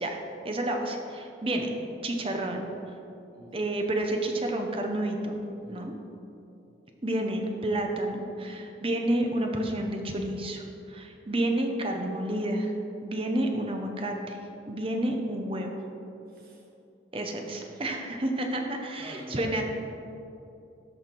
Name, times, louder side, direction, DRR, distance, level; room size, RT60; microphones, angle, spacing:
voice 1, 0.0-1.7 2.0-2.7 3.5-5.4 5.7-5.9 7.0-12.7 13.0-14.4 14.7-15.8 17.1-19.6, right 1 dB, 30° right, 3 dB, 0.8 m, -30 dB
voice 2, 5.6-6.1 16.3-16.7 17.3-18.1 19.0-19.6, equal, 50° right, -2 dB, 1.8 m, -47 dB
12.5 x 5.8 x 4.5 m, 2.8 s
head